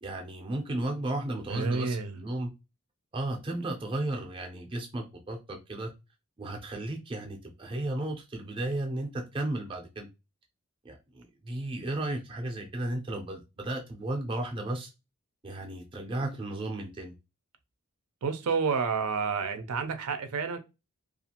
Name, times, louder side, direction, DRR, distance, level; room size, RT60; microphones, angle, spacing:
voice 1, 0.0-2.5 3.1-5.9 6.4-10.1 10.8-14.9 15.4-17.1, right 1 dB, 20° right, 0.5 m, -34 dB
voice 2, 1.5-2.2 18.2-20.6, right 5 dB, 80° right, 0.5 m, -29 dB
2.4 x 2.4 x 2.8 m
head